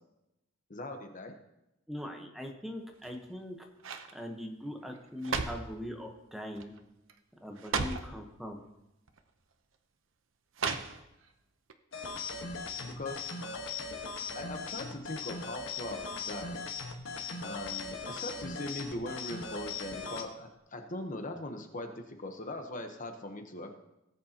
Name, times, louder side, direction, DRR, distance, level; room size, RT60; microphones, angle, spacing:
voice 1, 0.7-1.3 10.7-10.8 12.8-13.3 14.3-16.6 17.4-23.7, left 2 dB, 40° left, 5 dB, 1.0 m, -40 dB
voice 2, 1.9-3.6 4.1-6.7 7.4-8.6, equal, ahead, 2 dB, 1.1 m, -41 dB
sound 1, 2.9-3.4 3.8-4.1 4.9-5.8 6.6-6.8 7.1-7.2 7.6-8.1 9.1-9.2 10.5-11.3 11.7-11.8, right 5 dB, 75° right, 0.8 m, -35 dB
sound 2, 11.9-20.3, left 4 dB, 75° left, 1.4 m, -39 dB
18.0 x 8.3 x 2.9 m, 0.90 s
head